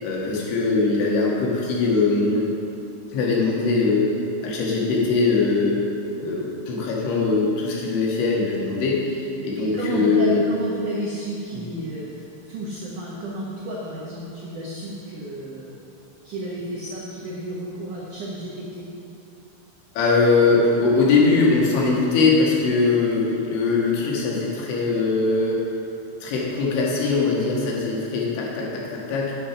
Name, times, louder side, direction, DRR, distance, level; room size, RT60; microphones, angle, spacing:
voice 1, 0.0-2.5 3.1-4.2 4.4-5.8 6.2-10.4 11.5-11.6 20.0-25.6 26.2-29.3, left 3 dB, 75° left, -3 dB, 4.0 m, -21 dB
voice 2, 9.6-15.7 16.2-18.9, right 1 dB, 90° right, -5 dB, 1.7 m, -31 dB
9.0 x 8.9 x 5.8 m, 2.7 s
omnidirectional pair, 5.6 m